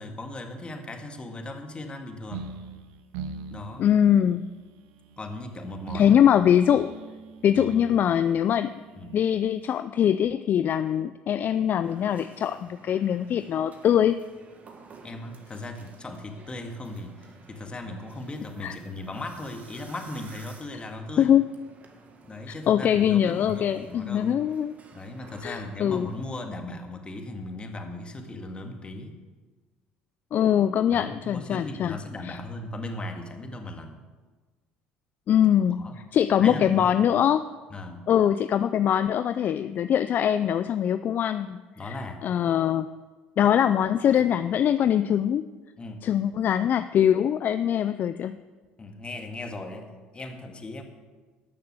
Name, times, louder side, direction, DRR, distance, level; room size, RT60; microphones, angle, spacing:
voice 1, 0.0-2.5 3.5-3.9 5.2-6.2 9.0-9.2 15.0-21.4 22.2-24.3 24.9-29.2 30.9-34.0 35.7-36.0 36.4-37.0 37.7-38.1 41.8-42.2 45.8-46.1 48.8-50.8, left 2 dB, 25° left, 4 dB, 2.0 m, -37 dB
sound 1, 2.3-9.8, right 6 dB, 80° right, 1.0 m, -42 dB
voice 2, 3.8-4.4 5.9-7.0 7.4-8.7 9.1-14.2 18.6-18.8 21.2-21.4 22.5-24.8 25.4-26.1 30.3-32.0 32.2-32.4 35.3-35.8 36.1-37.5 38.1-42.0 42.2-42.9 43.4-45.5 46.0-48.4, left 9 dB, 50° left, 12 dB, 0.4 m, -22 dB
sound 2, 11.8-26.4, right 3 dB, 35° right, 1.7 m, -52 dB
12.5 x 6.7 x 8.0 m, 1.3 s
hypercardioid pair, 75°, 4 cm